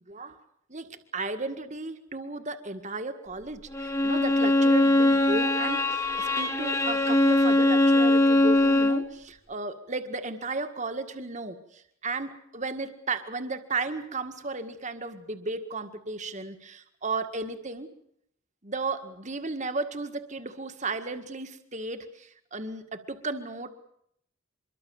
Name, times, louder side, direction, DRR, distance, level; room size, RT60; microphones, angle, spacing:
voice 1, 0.1-0.4 0.7-17.9 18.6-23.7, right 3 dB, 35° right, 8 dB, 1.8 m, -34 dB
Bowed string instrument, 3.7-9.1, left 1 dB, 15° left, 1.6 m, -22 dB
25.5 x 23.0 x 7.2 m, 0.71 s
head